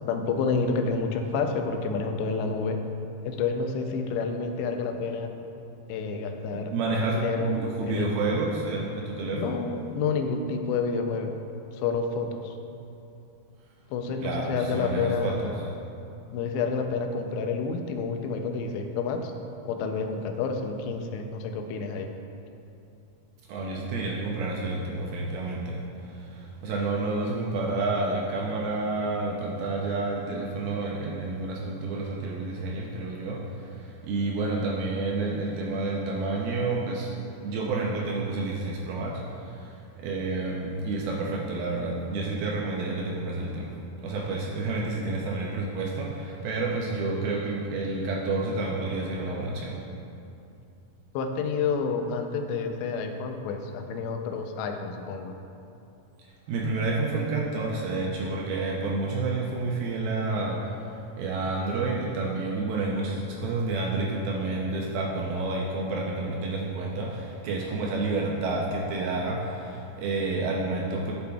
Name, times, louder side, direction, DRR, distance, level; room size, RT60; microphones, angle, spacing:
voice 1, 0.1-2.8 3.2-5.3 5.9-8.2 9.3-11.3 11.7-12.6 13.9-15.6 16.3-19.3 19.7-22.1 51.1-55.3, left 4 dB, 85° left, 5 dB, 2.8 m, -29 dB
voice 2, 6.5-9.6 14.2-15.6 23.5-49.8 56.5-71.1, right 3 dB, 80° right, -2 dB, 2.3 m, -29 dB
11.5 x 6.8 x 2.3 m, 2.7 s
omnidirectional pair, 4.9 m